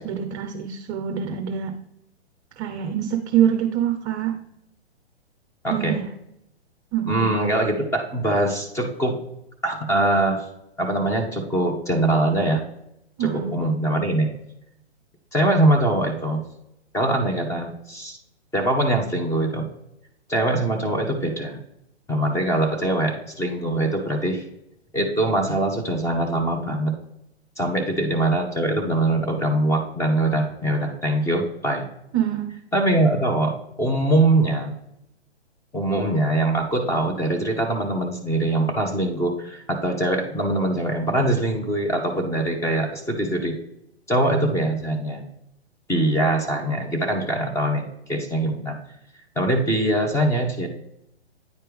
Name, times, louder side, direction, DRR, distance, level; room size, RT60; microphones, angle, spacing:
voice 1, 0.0-1.8 2.6-4.4 5.7-6.1 6.9-7.3 13.2-13.5 27.8-27.9 32.1-32.5, right 9 dB, 30° right, 5 dB, 0.6 m, -25 dB
voice 2, 5.6-5.9 7.1-9.2 9.6-10.5 10.8-12.6 13.2-14.3 15.3-16.4 16.9-18.2 18.5-19.7 20.3-21.6 22.1-24.4 24.9-27.0 27.6-31.9 32.7-34.7 35.7-43.6 44.1-45.2 45.9-48.8 49.4-50.7, right 1 dB, 10° left, 2 dB, 0.9 m, -23 dB
9.3 x 4.5 x 3.4 m, 0.81 s
hypercardioid pair, 130°, 33 cm